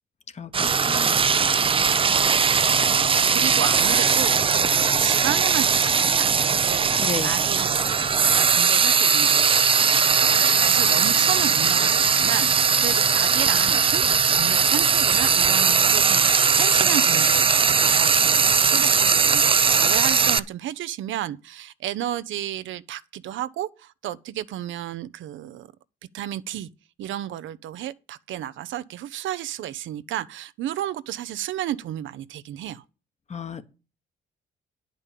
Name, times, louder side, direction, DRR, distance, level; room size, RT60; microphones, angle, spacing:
voice 1, 0.3-1.2 7.0-7.4 33.3-33.6, left 5 dB, 35° left, 1.1 m, -33 dB
Frying (food), 0.5-20.4, right 6 dB, 25° right, 0.5 m, -19 dB
voice 2, 2.4-7.0 7.2-14.0 14.3-25.7 26.1-26.7 27.0-32.8, right 12 dB, 75° right, 0.6 m, -32 dB
10.0 x 5.2 x 8.3 m
cardioid pair, 90°, 20 cm